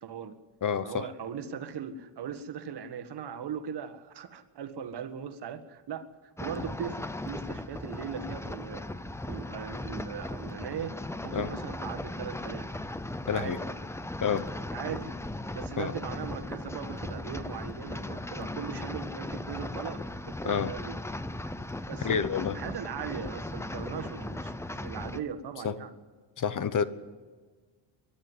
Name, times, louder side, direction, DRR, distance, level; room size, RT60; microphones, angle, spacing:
voice 1, 0.0-0.4 0.8-6.1 6.4-8.8 9.3-12.7 13.3-13.6 14.7-15.2 15.5-21.0 21.9-22.3 22.5-25.9, right 7 dB, 55° right, 9 dB, 1.7 m, -39 dB
voice 2, 0.6-1.0 11.3-11.5 13.3-13.6 14.2-14.4 15.8-15.9 20.4-20.7 22.0-22.6 25.6-25.7 26.4-26.8, left 7 dB, 40° left, 14 dB, 1.0 m, -28 dB
sound 1, 6.4-25.2, left 1 dB, 5° left, 0.6 m, -37 dB
23.0 x 12.0 x 9.6 m, 1.4 s
cardioid pair, 115°, 48 cm